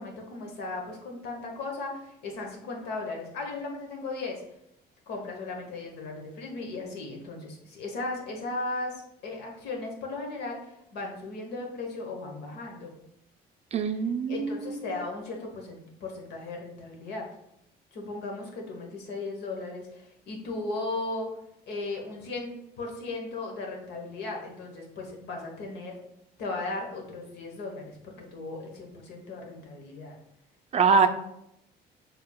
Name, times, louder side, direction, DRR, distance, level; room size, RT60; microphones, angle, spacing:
voice 1, 0.0-4.4 5.1-8.9 9.2-10.6 10.9-12.9 14.3-17.3 17.9-21.3 21.7-26.0 26.4-30.1 30.9-31.1, left 3 dB, 75° left, 1 dB, 1.2 m, -36 dB
voice 2, 13.7-15.0 30.7-31.1, right 5 dB, 40° right, 8 dB, 0.4 m, -24 dB
6.6 x 3.4 x 2.3 m, 0.79 s
cardioid pair, 110°, 17 cm